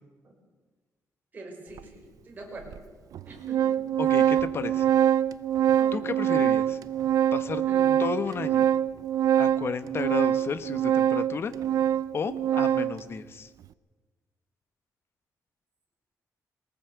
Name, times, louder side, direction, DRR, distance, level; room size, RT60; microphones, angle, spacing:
voice 1, 1.3-2.8 3.3-3.8 5.8-6.1 7.6-8.0, right 1 dB, 30° right, 1 dB, 5.4 m, -44 dB
Organ, 1.8-1.9 2.7-2.8 3.1-13.0, right 10 dB, 70° right, 0.6 m, -24 dB
voice 2, 4.0-4.9 5.9-6.8 7.3-7.6 8.0-8.7 9.4-11.5 12.1-13.5, left 6 dB, 40° left, 12 dB, 1.1 m, -32 dB
20.5 x 19.0 x 8.0 m, 1.3 s
wide cardioid pair, 160°, 6 cm